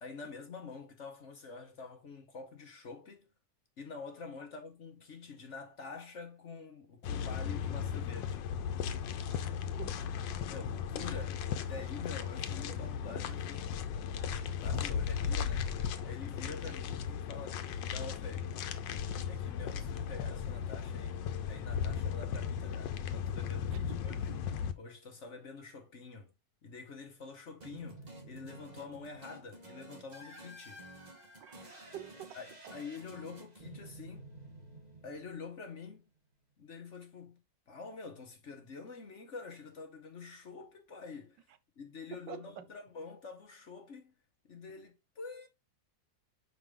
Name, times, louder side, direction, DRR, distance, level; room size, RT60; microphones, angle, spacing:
voice 1, 0.0-3.3 3.8-8.5 10.5-13.7 14.6-15.7 16.0-18.5 19.3-24.3 24.8-26.3 26.6-30.8 32.3-34.3 35.0-36.0 36.6-37.4 37.7-41.5 41.8-44.1 44.4-45.5, left 4 dB, 45° left, 1.2 m, -47 dB
sound 1, 7.0-24.7, left 7 dB, 90° left, 1.4 m, -36 dB
voice 2, 9.3-10.1 11.0-11.2 12.7-12.8 13.1-13.3 16.6-16.7 23.7-24.7 31.4-32.4 32.6-32.8 42.1-42.7 44.5-44.6, right 11 dB, 85° right, 1.4 m, -49 dB
sound 2, 27.6-35.8, right 1 dB, 25° right, 1.2 m, -51 dB
5.8 x 5.0 x 3.6 m
omnidirectional pair, 1.9 m